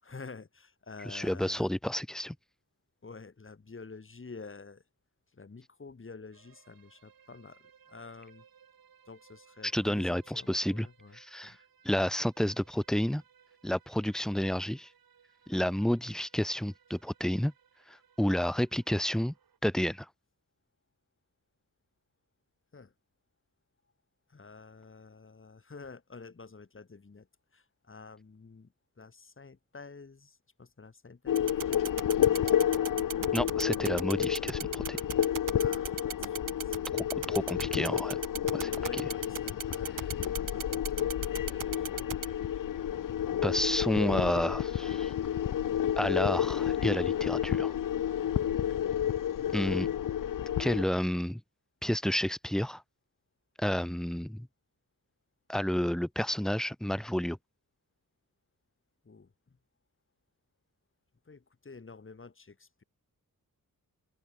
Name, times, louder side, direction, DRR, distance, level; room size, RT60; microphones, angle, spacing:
voice 1, 0.0-1.7 3.0-4.8 5.3-8.5 9.1-11.6 11.9-12.0 22.7-22.9 24.3-32.0 32.3-32.6 35.6-36.8 37.2-37.6 38.7-42.2 48.3-48.8 59.0-59.6 61.2-62.8, left 4 dB, 35° left, 4.8 m, -49 dB
voice 2, 1.1-2.4 9.6-10.9 11.1-11.6 11.8-13.2 13.6-14.9 15.5-17.5 17.9-19.3 19.6-20.1 33.3-35.0 36.9-38.2 38.5-38.7 43.4-45.1 46.0-47.7 49.5-49.9 50.6-51.4 51.8-52.8 53.6-54.5 55.5-57.4, equal, ahead, 0.6 m, -30 dB
sound 1, 6.3-19.6, right 8 dB, 85° right, 6.3 m, -63 dB
sound 2, 31.3-50.8, left 10 dB, 65° left, 0.8 m, -30 dB
sound 3, 31.4-42.3, right 8 dB, 65° right, 1.4 m, -36 dB
open air
wide cardioid pair, 110°, 34 cm